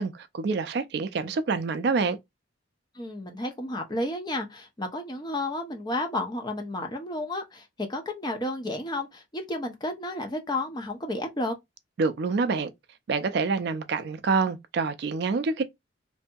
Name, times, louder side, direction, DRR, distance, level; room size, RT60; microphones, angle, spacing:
voice 1, 0.0-2.2 12.0-12.7 13.1-15.6, right 4 dB, 55° right, 0.3 m, -27 dB
voice 2, 2.9-11.5, left 1 dB, 20° left, 0.5 m, -32 dB
2.6 x 2.6 x 2.2 m
head